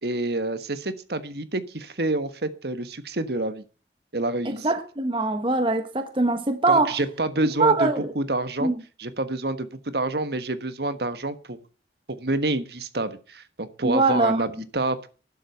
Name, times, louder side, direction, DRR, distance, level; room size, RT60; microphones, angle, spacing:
voice 1, 0.0-3.6 4.1-4.7 6.7-8.7 9.0-11.6 12.2-15.1, right 2 dB, 65° right, 1.4 m, -28 dB
voice 2, 4.4-7.0 7.6-8.1 8.6-8.8 13.8-14.4, right 2 dB, 30° right, 1.3 m, -22 dB
12.0 x 7.6 x 7.9 m
head